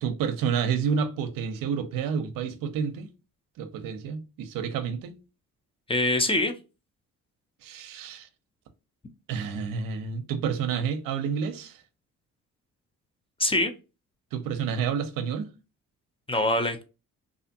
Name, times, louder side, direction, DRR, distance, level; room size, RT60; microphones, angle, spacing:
voice 1, 0.0-3.1 3.6-5.2 7.6-8.3 9.3-11.8 14.3-15.5, right 7 dB, 75° right, 0.5 m, -29 dB
voice 2, 5.9-6.5 13.4-13.7 16.3-16.9, left 1 dB, 15° left, 0.5 m, -24 dB
2.5 x 2.4 x 2.6 m
supercardioid pair, 60°, 34 cm